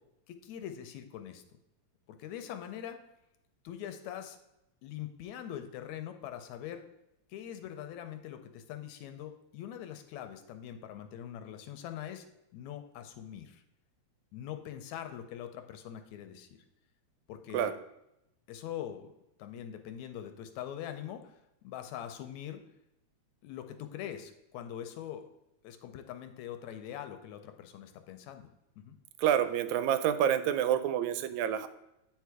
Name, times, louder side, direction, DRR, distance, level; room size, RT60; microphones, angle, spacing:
voice 1, 0.3-1.4 2.1-3.0 3.6-4.4 4.8-6.8 7.3-12.3 12.5-13.6 14.3-16.6 17.3-17.8 18.5-19.1 19.4-21.4 21.6-22.6 23.4-25.2 25.6-28.5 28.8-29.0, left 10 dB, 85° left, 8 dB, 1.9 m, -43 dB
voice 2, 29.2-31.7, right 10 dB, 85° right, 11 dB, 1.9 m, -28 dB
9.0 x 4.6 x 4.7 m, 0.86 s
omnidirectional pair, 3.3 m